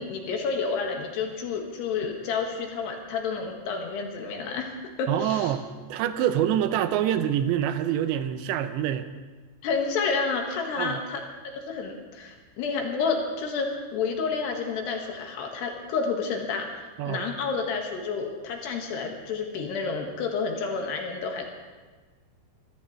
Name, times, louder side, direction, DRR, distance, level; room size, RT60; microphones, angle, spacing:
voice 1, 0.0-4.7 5.0-5.5 9.6-11.2 11.5-21.5, left 5 dB, 75° left, 2 dB, 3.7 m, -30 dB
voice 2, 5.1-9.1 10.8-11.0 17.0-17.2, right 10 dB, 85° right, 10 dB, 3.0 m, -26 dB
24.0 x 14.5 x 3.2 m, 1.3 s
omnidirectional pair, 5.1 m